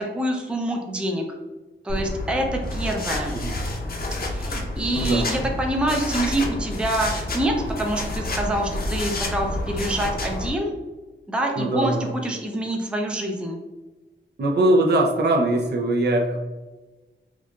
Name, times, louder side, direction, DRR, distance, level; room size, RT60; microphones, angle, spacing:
voice 1, 0.1-1.4 1.8-3.4 4.3-10.7 11.3-11.9 12.2-13.6, right 1 dB, 5° right, 1 dB, 0.4 m, -26 dB
sound 1, 1.9-10.5, left 1 dB, 50° left, 0.6 m, -29 dB
voice 2, 4.9-5.4 11.6-12.1 14.4-16.4, right 1 dB, 55° right, 1 dB, 0.6 m, -21 dB
4.5 x 2.4 x 2.3 m, 1.2 s
wide cardioid pair, 135°, 20 cm